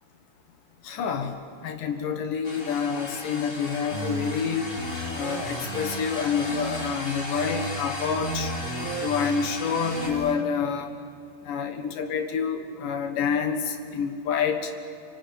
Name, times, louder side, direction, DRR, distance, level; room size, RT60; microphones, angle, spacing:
voice 1, 0.8-1.4 1.6-4.7 5.1-8.5 9.0-10.9 11.5-14.7, left 6 dB, 70° left, 6 dB, 2.9 m, -28 dB
sound 1, 2.4-10.1, left 2 dB, 30° left, 3.7 m, -36 dB
sound 2, 3.9-6.9 7.3-10.3, right 2 dB, 80° right, 0.7 m, -35 dB
25.0 x 24.0 x 8.6 m, 2.3 s
omnidirectional pair, 4.2 m